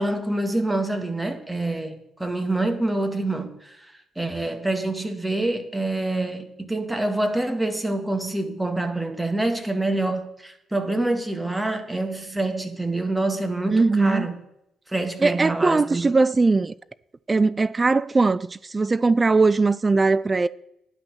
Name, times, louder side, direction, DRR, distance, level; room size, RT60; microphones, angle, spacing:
voice 1, 0.0-3.9 4.2-14.4 14.9-16.1, right 2 dB, 10° right, 1.9 m, -26 dB
voice 2, 13.7-14.3 15.2-16.7 17.3-20.5, right 3 dB, 25° right, 0.4 m, -20 dB
10.0 x 6.0 x 7.3 m
figure-of-eight pair, 40°, 0 cm